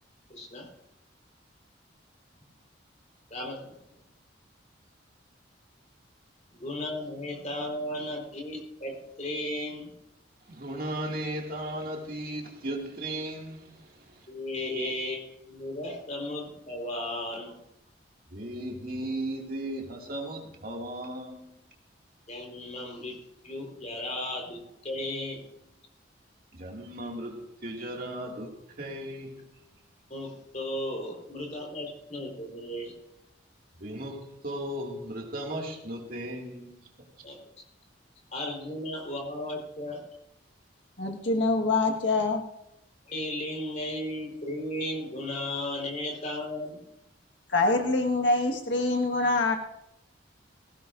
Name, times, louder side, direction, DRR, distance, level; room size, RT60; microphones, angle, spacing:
voice 1, 0.3-0.7 3.3-3.7 6.5-9.9 14.3-15.2 15.5-17.6 22.3-23.2 23.4-25.4 30.1-32.9 37.2-37.4 38.3-40.0 43.1-46.8, left 1 dB, 40° left, 4.1 m, -35 dB
voice 2, 10.5-14.3 14.5-15.1 18.3-21.6 26.5-29.4 33.8-36.8, right 1 dB, 50° right, 2.2 m, -36 dB
voice 3, 41.0-42.4 47.5-49.6, left 3 dB, 70° left, 1.6 m, -25 dB
19.0 x 16.0 x 2.6 m
head